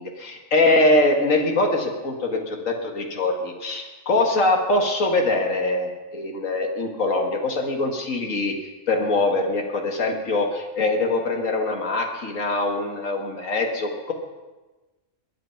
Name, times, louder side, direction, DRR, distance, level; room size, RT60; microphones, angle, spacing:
voice 1, 0.0-8.5 8.9-14.1, left 2 dB, 90° left, 3 dB, 2.1 m, -23 dB
22.5 x 9.1 x 5.8 m, 1.2 s
omnidirectional pair, 1.3 m